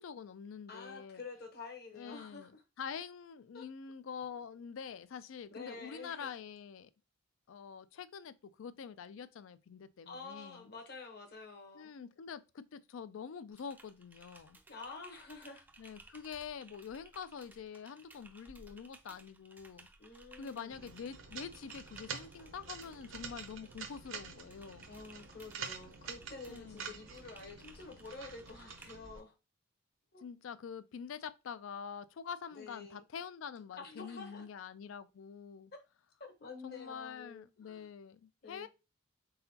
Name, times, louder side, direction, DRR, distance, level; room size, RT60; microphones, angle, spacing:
voice 1, 0.0-1.2 2.0-2.5 2.8-6.9 7.5-10.7 11.7-14.6 15.8-19.9 20.4-24.9 26.5-27.0 30.2-35.7 36.6-38.7, left 6 dB, 75° left, 0.4 m, -46 dB
voice 2, 0.7-2.6 3.5-3.6 5.5-6.3 10.1-11.9 14.7-15.7 20.0-20.8 24.8-29.3 30.1-30.2 32.5-33.0 33.8-34.4 36.4-37.9 38.4-38.7, left 4 dB, 50° left, 0.9 m, -49 dB
Typing, 13.5-29.2, right 2 dB, 10° right, 0.4 m, -59 dB
Floor Tile Scraping Concrete, 20.7-29.2, right 6 dB, 70° right, 0.7 m, -48 dB
3.9 x 3.8 x 2.8 m
head